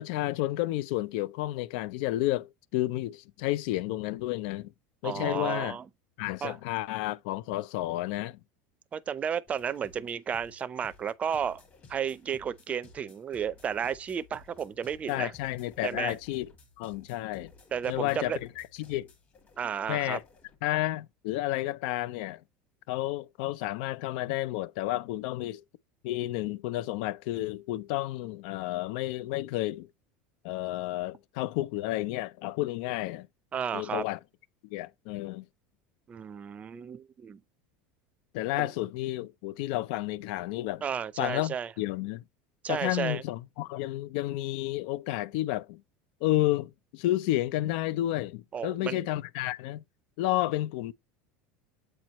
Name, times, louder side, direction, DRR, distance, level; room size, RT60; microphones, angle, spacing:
voice 1, 0.0-4.7 5.0-5.8 6.2-8.4 15.1-16.5 16.8-17.5 17.9-19.1 19.9-20.2 20.6-22.4 22.9-25.6 26.0-29.9 30.4-33.3 33.7-34.2 34.7-35.4 38.3-40.8 41.2-42.2 42.7-45.8 46.2-49.8 50.2-50.9, left 16 dB, 70° left, 0.4 m, -31 dB
voice 2, 5.0-5.9 6.4-6.6 8.9-11.6 11.9-15.3 15.8-16.2 17.7-18.4 19.6-20.2 33.5-34.0 36.1-37.4 38.6-38.7 40.8-41.7 42.6-43.2 48.5-49.0, right 7 dB, 25° right, 0.5 m, -33 dB
sound 1, 9.5-20.6, left 3 dB, 35° left, 2.1 m, -56 dB
7.7 x 4.4 x 2.9 m
supercardioid pair, 120°, 5 cm